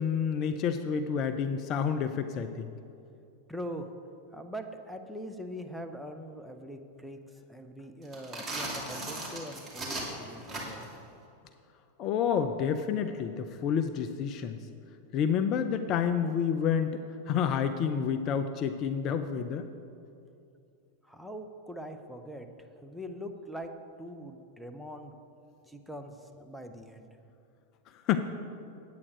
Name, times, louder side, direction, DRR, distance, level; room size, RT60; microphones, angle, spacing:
voice 1, 0.0-2.7 12.0-14.6 15.1-17.0 17.3-19.7 28.1-28.2, left 7 dB, 35° left, 8 dB, 0.4 m, -29 dB
voice 2, 3.5-3.9 4.3-7.2 7.5-10.9 21.0-22.5 22.8-23.7 24.0-25.1 25.7-27.1, equal, ahead, 4 dB, 0.7 m, -42 dB
sound 1, 8.0-11.0, right 2 dB, 25° right, 2.3 m, -37 dB
9.3 x 8.5 x 5.0 m, 2.5 s
figure-of-eight pair, 90°, 0 cm